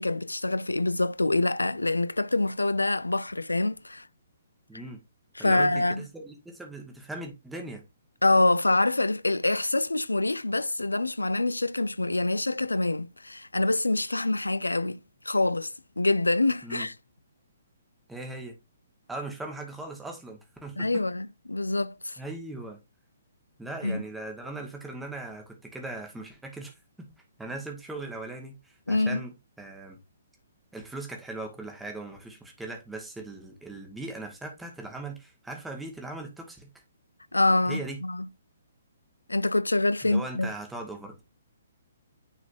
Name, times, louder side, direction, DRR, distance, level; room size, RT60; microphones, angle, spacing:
voice 1, 0.0-4.1 5.4-6.1 8.2-15.0 15.2-16.9 20.8-22.2 23.8-24.0 28.9-29.2 37.3-38.3 39.3-40.5, left 2 dB, 80° left, 0.4 m, -26 dB
voice 2, 4.7-5.0 5.4-7.8 16.6-16.9 18.1-18.5 19.1-21.0 22.2-22.8 23.6-27.1 27.4-30.0 30.7-36.7 37.7-38.0 40.0-41.2, right 2 dB, 5° right, 1.4 m, -39 dB
9.7 x 4.1 x 2.6 m
figure-of-eight pair, 125°, 0 cm